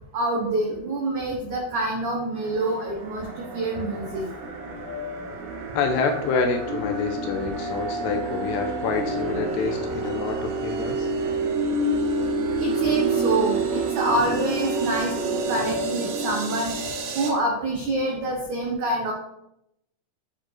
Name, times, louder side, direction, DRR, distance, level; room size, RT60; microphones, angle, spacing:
voice 1, 0.1-4.3 12.6-16.7 17.1-19.1, right 2 dB, 90° right, -1 dB, 1.7 m, -26 dB
sound 1, 2.4-17.3, right 2 dB, 75° right, 2.7 m, -28 dB
voice 2, 5.7-11.1, left 4 dB, 80° left, 4 dB, 2.7 m, -27 dB
10.5 x 4.7 x 3.2 m, 0.81 s
omnidirectional pair, 5.2 m